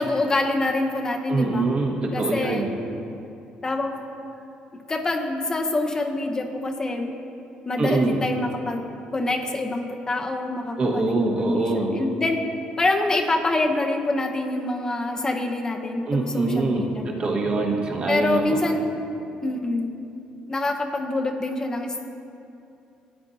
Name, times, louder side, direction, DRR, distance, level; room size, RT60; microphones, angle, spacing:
voice 1, 0.0-1.7 2.1-2.7 3.6-4.0 4.7-7.1 7.7-8.9 9.1-12.4 12.8-17.3 18.1-18.9 19.4-19.9 20.5-22.1, left 2 dB, 25° left, 3 dB, 0.7 m, -26 dB
voice 2, 1.3-2.7 7.8-8.2 10.8-11.9 16.1-18.6, right 3 dB, 40° right, 0 dB, 1.4 m, -24 dB
13.5 x 8.8 x 2.7 m, 2.7 s
cardioid pair, 105°, 3 cm